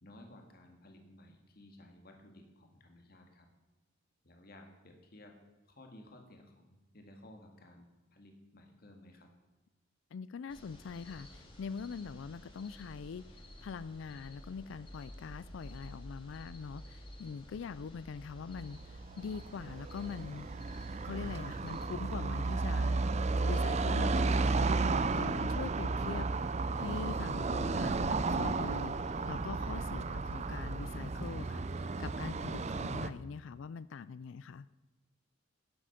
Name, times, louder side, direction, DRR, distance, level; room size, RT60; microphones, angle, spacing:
voice 1, 0.0-3.5 4.2-5.4 5.7-9.3, left 1 dB, 50° left, 3 dB, 2.0 m, -56 dB
voice 2, 10.1-20.5 21.0-23.1 23.4-26.3 26.8-34.7, left 5 dB, 70° left, 16 dB, 0.4 m, -43 dB
sound 1, 10.5-21.9, equal, 25° left, 2.0 m, -52 dB
Car passing by / Traffic noise roadway noise, 18.4-33.1, right 3 dB, 35° right, 0.5 m, -33 dB
sound 2, 20.0-26.0, right 1 dB, 55° right, 1.9 m, -58 dB
12.5 x 10.0 x 5.8 m, 1.1 s
head